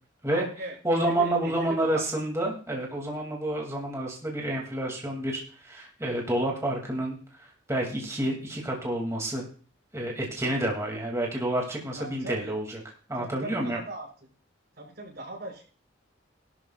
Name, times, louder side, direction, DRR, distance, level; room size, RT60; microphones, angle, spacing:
voice 1, 0.3-2.0 11.9-12.6 13.2-14.1 14.8-15.6, right 1 dB, 55° right, -2 dB, 5.7 m, -39 dB
voice 2, 0.8-7.2 7.4-9.4 9.9-12.8 13.1-13.8, right 1 dB, 15° right, -1 dB, 2.3 m, -29 dB
17.5 x 12.5 x 2.3 m, 0.39 s
head